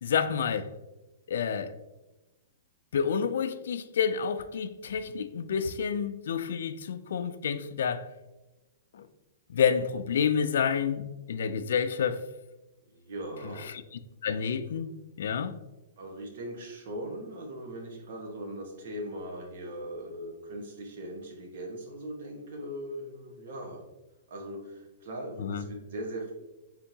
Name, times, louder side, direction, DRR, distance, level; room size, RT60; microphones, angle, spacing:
voice 1, 0.0-0.7 1.3-1.8 2.9-8.1 8.9-9.1 9.5-12.3 13.4-13.8 14.2-15.6 25.4-25.6, left 7 dB, 75° left, 0.3 m, -29 dB
voice 2, 12.9-13.7 16.0-23.8 24.3-26.3, right 1 dB, 60° right, 1.2 m, -39 dB
4.4 x 3.7 x 2.8 m
hypercardioid pair, 165°, 0 cm